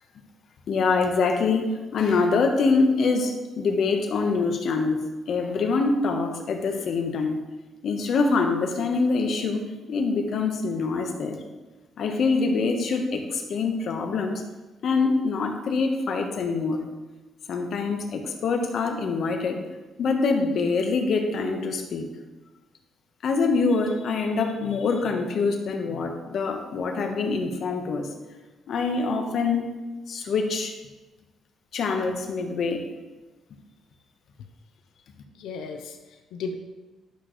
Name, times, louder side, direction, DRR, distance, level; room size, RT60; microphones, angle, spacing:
voice 1, 0.7-5.0 5.3-7.4 7.8-9.6 9.9-11.4 12.0-14.4 14.8-16.8 17.5-19.6 20.0-22.1 23.2-28.1 28.7-29.7 30.1-30.7 31.7-32.8, left 4 dB, 65° left, 4 dB, 1.3 m, -25 dB
voice 2, 35.3-36.5, left 4 dB, 85° left, 5 dB, 0.8 m, -35 dB
11.5 x 6.2 x 3.3 m, 1.2 s
cardioid pair, 90°, 0 cm